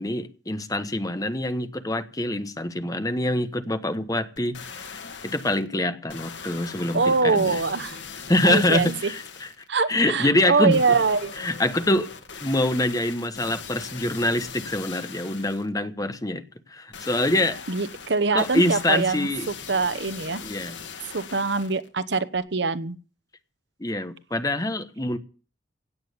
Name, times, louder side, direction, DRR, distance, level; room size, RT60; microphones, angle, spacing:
voice 1, 0.0-4.9 5.2-7.6 8.3-9.5 9.9-10.8 11.4-12.1 12.4-16.4 16.7-17.6 18.3-19.5 20.4-20.8 23.8-25.2, left 1 dB, 20° left, 1.1 m, -25 dB
sound 1, 4.4-5.7 6.1-9.7 10.7-15.7 16.9-21.9 22.4-22.5, left 6 dB, 85° left, 2.2 m, -40 dB
voice 2, 6.9-8.0 8.4-9.1 9.7-11.3 17.7-20.4 21.1-22.9, right 4 dB, 70° right, 0.9 m, -24 dB
17.0 x 8.8 x 6.7 m
head